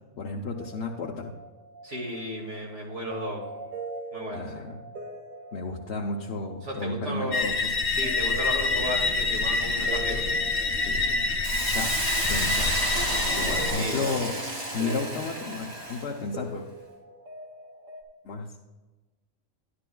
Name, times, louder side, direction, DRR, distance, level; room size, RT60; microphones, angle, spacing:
voice 1, 0.2-1.3 4.3-4.8 5.5-7.7 10.8-11.3 11.7-11.9 12.3-12.7 13.1-14.4 14.7-16.7 18.2-18.5, left 3 dB, 60° left, -1 dB, 1.0 m, -33 dB
sound 1, 0.6-18.0, right 2 dB, 85° right, 1.6 m, -42 dB
voice 2, 1.8-3.4 4.1-4.6 6.6-7.4 7.9-10.2 13.3-14.2, equal, 65° right, -1 dB, 2.5 m, -34 dB
sound 2, 7.3-13.7, left 3 dB, 40° left, 1.1 m, -26 dB
Hiss, 11.4-16.2, right 1 dB, 30° right, 1.8 m, -31 dB
11.5 x 11.5 x 2.3 m, 1.2 s
omnidirectional pair, 1.3 m